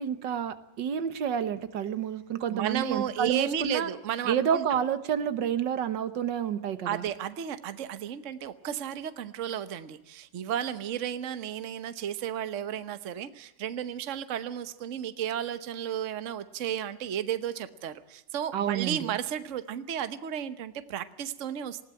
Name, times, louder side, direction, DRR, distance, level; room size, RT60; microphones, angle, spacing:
voice 1, 0.0-3.9 4.3-7.0 18.5-19.2, right 8 dB, 85° right, 12 dB, 1.8 m, -29 dB
voice 2, 2.5-4.6 6.8-21.8, right 9 dB, 50° right, 12 dB, 1.2 m, -33 dB
20.0 x 16.0 x 8.9 m, 0.91 s
omnidirectional pair, 1.9 m